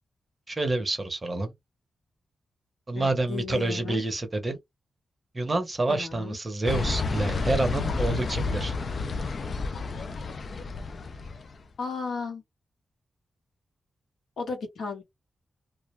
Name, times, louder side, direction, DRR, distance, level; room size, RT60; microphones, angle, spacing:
voice 1, 0.5-1.5 2.9-4.6 5.3-8.7, right 2 dB, 20° right, 0.7 m, -28 dB
voice 2, 2.9-4.0 5.9-6.4 11.8-12.4 14.4-15.0, left 5 dB, 80° left, 1.1 m, -34 dB
sound 1, 6.6-11.5, left 3 dB, 45° left, 0.3 m, -30 dB
2.3 x 2.2 x 3.0 m
wide cardioid pair, 165°, 0 cm